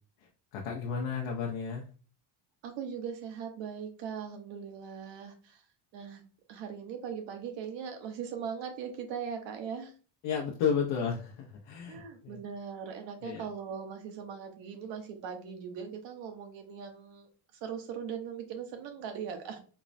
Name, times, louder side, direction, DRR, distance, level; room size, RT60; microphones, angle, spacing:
voice 1, 0.5-1.8 10.2-12.4 13.2-13.4, left 6 dB, 90° left, -1 dB, 0.8 m, -32 dB
voice 2, 2.6-5.6 5.9-6.2 6.5-9.9 11.9-17.3 17.6-19.6, right 7 dB, 65° right, 6 dB, 0.9 m, -40 dB
4.6 x 2.0 x 2.6 m, 0.39 s
cardioid pair, 150°, 46 cm